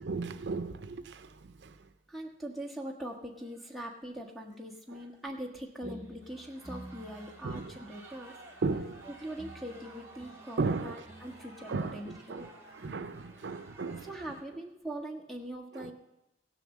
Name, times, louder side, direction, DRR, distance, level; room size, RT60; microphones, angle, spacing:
voice 1, 0.0-1.8 7.4-7.7 8.6-9.1 10.6-11.0 11.7-14.1 15.7-15.9, right 4 dB, 70° right, 0.5 m, -35 dB
voice 2, 2.1-8.4 9.0-12.5 14.0-15.9, right 1 dB, ahead, 1.4 m, -42 dB
sound 1, 2.2-2.4 2.6-2.7 3.4-3.8 4.9-5.4 6.0-14.4, right 2 dB, 15° right, 2.3 m, -54 dB
sound 2, 5.8-13.3, right 1 dB, 35° left, 1.9 m, -52 dB
16.0 x 7.0 x 7.3 m
head